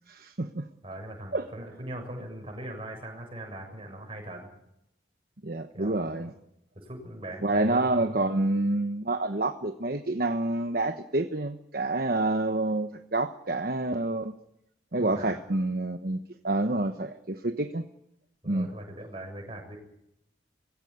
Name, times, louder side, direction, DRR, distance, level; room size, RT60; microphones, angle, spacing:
voice 1, 0.1-0.7 1.3-1.5 5.4-6.3 7.4-14.3 14.9-17.8 18.4-18.7, right 2 dB, 50° right, 7 dB, 1.1 m, -28 dB
voice 2, 0.8-4.5 5.7-6.3 6.8-8.2 15.1-15.3 18.4-19.8, right 1 dB, 30° right, 2 dB, 7.1 m, -40 dB
20.5 x 16.5 x 9.6 m, 0.81 s
head